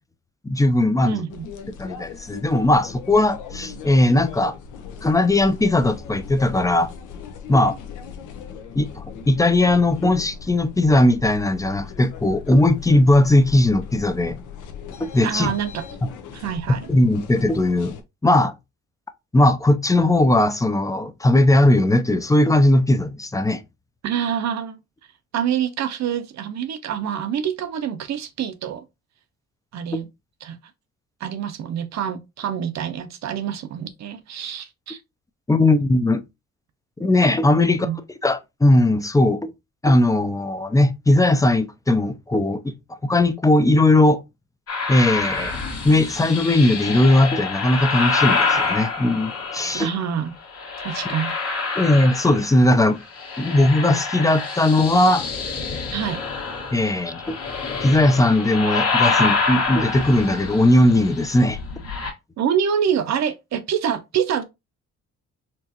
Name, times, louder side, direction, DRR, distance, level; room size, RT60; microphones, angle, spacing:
voice 1, 0.4-1.2 1.8-4.5 5.0-6.9 7.5-7.8 8.7-14.4 15.0-15.5 16.0-16.1 16.7-17.9 18.2-18.5 19.3-23.6 29.9-30.0 35.5-36.2 37.0-37.9 38.2-39.5 39.8-42.7 43.0-44.2 44.9-45.6 45.8-49.9 51.8-53.0 53.4-55.3 56.7-57.4 57.8-61.6, left 1 dB, 10° left, 0.4 m, -18 dB
voice 2, 1.0-1.5 3.5-3.8 15.2-15.8 16.3-16.9 24.0-24.8 25.3-28.8 29.7-30.1 30.4-30.6 31.2-35.0 37.6-38.0 49.7-50.3 50.8-51.3 55.9-56.2 62.4-64.4, right 8 dB, 65° right, 0.8 m, -26 dB
sound 1, 1.3-18.0, left 7 dB, 85° left, 0.7 m, -38 dB
sound 2, 44.7-50.0 50.5-52.8 53.0-62.1, left 4 dB, 50° left, 1.4 m, -26 dB
4.4 x 2.5 x 2.8 m
cardioid pair, 90°, 30 cm